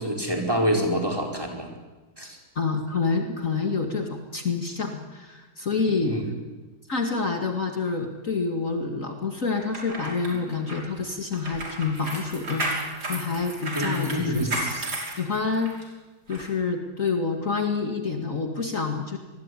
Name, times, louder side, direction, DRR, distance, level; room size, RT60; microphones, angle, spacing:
voice 1, 0.0-1.7 2.2-2.4 6.0-6.3 10.3-10.4 13.7-14.5, equal, 10° right, 1 dB, 4.9 m, -26 dB
voice 2, 2.6-6.2 6.9-15.7 16.3-19.2, left 4 dB, 45° left, 4 dB, 2.3 m, -28 dB
sound 1, 9.6-15.8 16.3-16.5, right 1 dB, 60° right, 6.1 m, -33 dB
26.5 x 21.0 x 9.8 m, 1.2 s
omnidirectional pair, 1.9 m